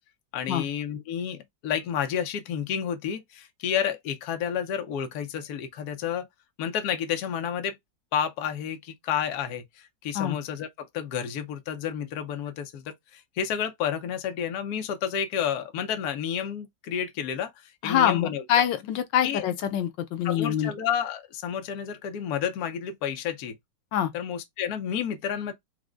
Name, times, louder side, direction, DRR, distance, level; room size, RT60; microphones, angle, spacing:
voice 1, 0.3-6.3 6.6-7.8 8.1-18.4 19.2-19.5 20.2-23.6 24.1-25.5, left 8 dB, 65° left, 1.2 m, -30 dB
voice 2, 17.8-20.7 23.9-24.1, left 10 dB, 85° left, 1.3 m, -25 dB
4.8 x 2.1 x 3.7 m
omnidirectional pair, 1.9 m